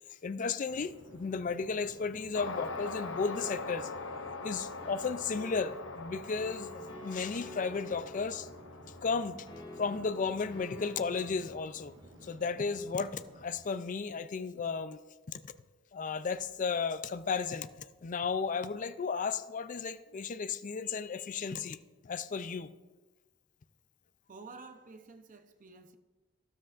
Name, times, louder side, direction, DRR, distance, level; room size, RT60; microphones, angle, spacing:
voice 1, 0.2-3.9 4.4-6.7 7.0-8.5 9.0-9.5 9.8-11.9 12.2-15.0 15.3-15.4 15.9-17.7 18.0-21.8 22.0-22.7, left 5 dB, 40° left, 0.4 m, -34 dB
sound 1, 0.7-13.6, right 1 dB, 85° right, 1.5 m, -55 dB
sound 2, 2.3-10.9, left 3 dB, 85° left, 0.9 m, -43 dB
sound 3, 3.3-11.5, left 1 dB, 25° left, 2.0 m, -50 dB
voice 2, 24.3-26.0, right 4 dB, 45° right, 0.8 m, -50 dB
13.0 x 12.5 x 2.5 m
head